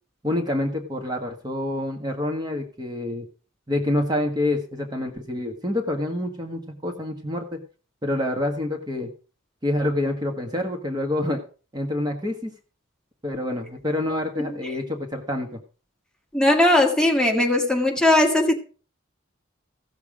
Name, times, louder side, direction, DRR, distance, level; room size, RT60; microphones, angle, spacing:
voice 1, 0.2-3.2 3.7-7.6 8.0-9.1 9.6-11.4 11.7-12.5 13.2-15.6, left 1 dB, 20° right, 3 dB, 1.5 m, -27 dB
voice 2, 16.3-18.5, left 1 dB, 5° left, 1 dB, 1.8 m, -19 dB
15.5 x 7.1 x 5.0 m, 0.38 s
head